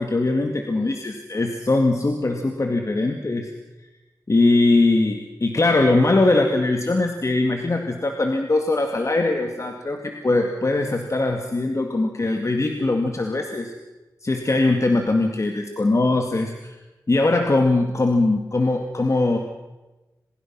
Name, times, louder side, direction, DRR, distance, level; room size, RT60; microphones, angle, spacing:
voice 1, 0.0-3.5 4.3-13.7 14.2-16.7 17.1-19.4, left 2 dB, 45° left, 4 dB, 2.2 m, -21 dB
27.0 x 21.0 x 6.2 m, 1.1 s
cardioid pair, 45°, 7 cm